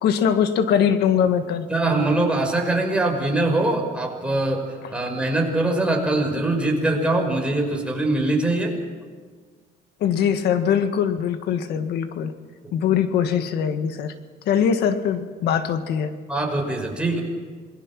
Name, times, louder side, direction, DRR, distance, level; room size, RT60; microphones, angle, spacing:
voice 1, 0.0-1.7 10.0-12.3 12.7-14.1 14.5-16.1, left 8 dB, 75° left, 9 dB, 1.7 m, -22 dB
voice 2, 1.7-8.8 16.3-17.2, right 2 dB, 5° right, 1 dB, 5.5 m, -22 dB
27.5 x 20.5 x 6.1 m, 1.5 s
cardioid pair, 110°, 17 cm